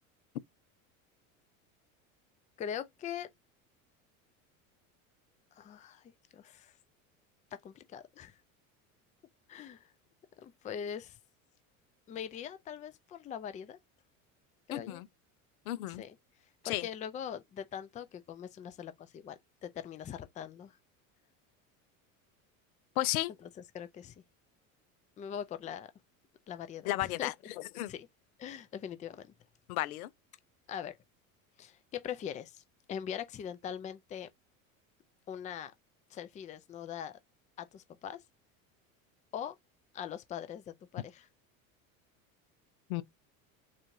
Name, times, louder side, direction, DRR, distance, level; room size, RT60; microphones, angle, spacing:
voice 1, 2.6-3.3 5.6-6.0 6.3-6.7 7.6-8.3 9.5-9.9 10.4-11.2 12.1-13.8 14.7-15.0 15.9-16.2 16.6-20.8 23.7-24.1 25.2-25.9 26.5-27.3 27.9-28.1 28.4-29.3 30.7-30.9 31.6-32.6 32.9-34.3 35.3-35.7 36.1-37.2 37.6-38.2 39.3-39.6 39.9-41.3, left 9 dB, 20° left, 0.4 m, -42 dB
voice 2, 14.7-15.1 15.7-16.0 16.6-16.9 23.0-23.3 26.9-27.3 27.8-27.9 29.7-30.1 42.9-43.0, left 16 dB, 85° left, 0.6 m, -33 dB
4.0 x 2.3 x 3.1 m
hypercardioid pair, 90°, 42 cm